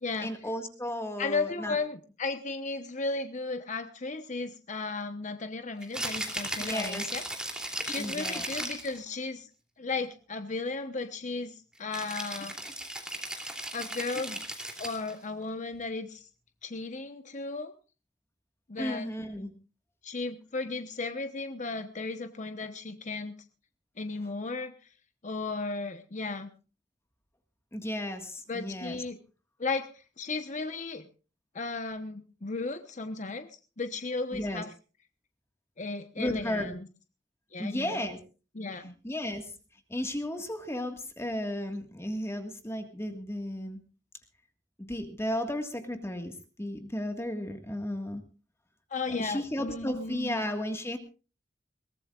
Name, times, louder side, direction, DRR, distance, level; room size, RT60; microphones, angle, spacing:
voice 1, 0.2-1.7 6.6-7.1 7.9-8.5 14.2-14.3 18.8-19.5 27.7-29.0 34.3-34.6 36.2-36.7 37.6-38.2 39.0-39.5 39.9-43.8 44.8-48.2 49.2-51.0, left 1 dB, 15° left, 6 dB, 1.7 m, -34 dB
voice 2, 1.2-7.2 7.9-9.5 9.8-12.5 13.7-14.4 14.8-16.3 16.6-17.7 18.7-19.1 20.0-23.3 24.0-24.7 25.2-26.5 28.5-29.2 29.6-31.1 31.5-33.5 33.8-34.7 35.8-36.7 37.5-38.1 38.5-38.9 48.9-50.4, left 3 dB, 45° left, 8 dB, 1.1 m, -35 dB
Rattle (instrument), 5.8-9.0 11.9-15.2, right 1 dB, 5° right, 3.0 m, -36 dB
22.0 x 18.0 x 2.5 m, 0.35 s
head